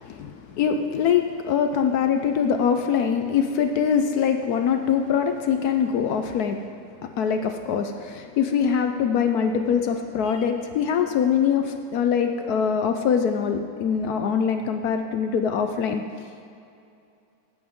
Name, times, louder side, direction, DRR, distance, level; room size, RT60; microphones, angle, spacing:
voice 1, 0.0-6.6 7.0-16.0, left 7 dB, 70° left, 6 dB, 1.0 m, -23 dB
16.5 x 8.6 x 3.6 m, 2.5 s
omnidirectional pair, 1.9 m